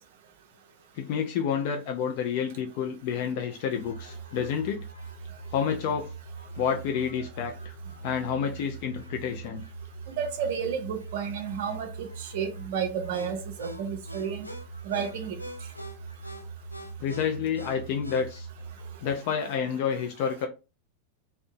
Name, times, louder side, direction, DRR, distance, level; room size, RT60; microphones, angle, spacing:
voice 1, 1.0-4.8 5.5-6.1 6.6-7.7 8.0-9.6 17.0-18.5 19.0-20.5, left 7 dB, 45° left, 0.3 m, -29 dB
sound 1, 3.7-19.1, right 3 dB, 90° left, 0.9 m, -41 dB
voice 2, 10.1-14.5 14.9-15.4, right 7 dB, 55° right, 0.4 m, -32 dB
2.5 x 2.1 x 2.6 m
figure-of-eight pair, 90°, 0 cm